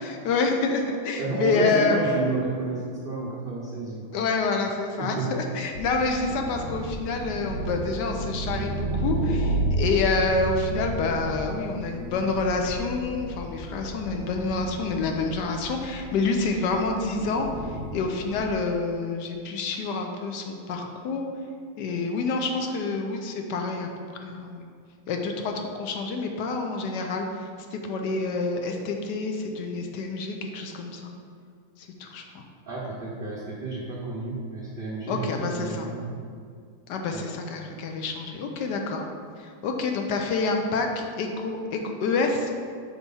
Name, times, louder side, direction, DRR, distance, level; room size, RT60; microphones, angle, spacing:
voice 1, 0.0-2.0 4.1-21.2 21.8-24.7 25.1-31.1 31.8-32.4 35.1-35.9 36.9-39.0 39.4-42.5, left 3 dB, 75° left, 3 dB, 1.2 m, -28 dB
voice 2, 0.9-4.2 5.0-5.3 32.7-36.2 37.1-37.3, right 3 dB, 55° right, -4 dB, 0.6 m, -31 dB
sound 1, 5.7-18.5, right 2 dB, 55° left, 0.7 m, -32 dB
4.5 x 4.4 x 5.5 m, 2.1 s
omnidirectional pair, 2.0 m